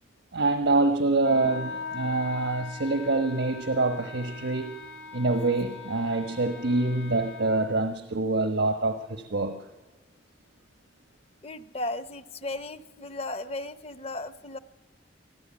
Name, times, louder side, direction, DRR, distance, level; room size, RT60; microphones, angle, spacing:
voice 1, 0.3-4.8 5.1-9.6, right 2 dB, 80° right, 7 dB, 1.2 m, -26 dB
Wind instrument woodwind instrument, 1.2-7.6, left 4 dB, 85° left, 3.5 m, -41 dB
voice 2, 11.4-14.6, left 2 dB, 35° left, 13 dB, 0.7 m, -35 dB
25.0 x 14.5 x 8.7 m, 1.3 s
head